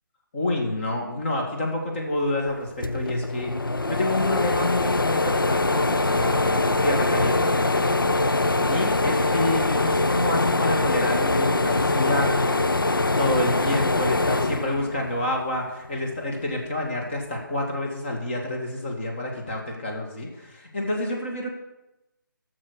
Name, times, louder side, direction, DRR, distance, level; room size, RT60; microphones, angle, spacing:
voice 1, 0.3-7.9 8.7-21.5, left 1 dB, 30° left, 0 dB, 2.1 m, -28 dB
sound 1, 2.5-2.6 2.8-15.4 15.9-17.0, left 2 dB, 75° left, 0.7 m, -23 dB
12.5 x 6.8 x 6.3 m, 0.97 s
figure-of-eight pair, 150°, 11 cm